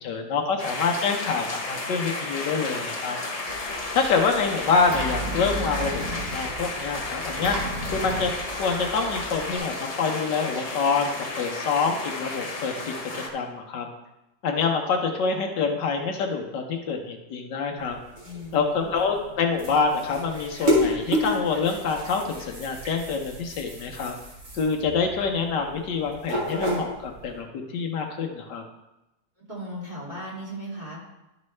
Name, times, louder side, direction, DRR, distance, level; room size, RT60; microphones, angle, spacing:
voice 1, 0.0-3.2 3.9-7.6 7.9-8.3 8.6-13.9 14.4-18.0 18.5-24.1 24.5-28.6, left 5 dB, 75° left, 3 dB, 1.4 m, -26 dB
sound 1, 0.6-13.3, left 2 dB, 40° left, 0.5 m, -33 dB
Engine, 3.5-9.6, right 1 dB, 75° right, 2.2 m, -35 dB
sound 2, 17.8-27.4, equal, 55° right, 2.7 m, -31 dB
voice 2, 18.2-19.0 29.4-31.0, equal, 25° right, -7 dB, 2.6 m, -37 dB
12.0 x 5.3 x 3.2 m, 0.96 s
omnidirectional pair, 1.9 m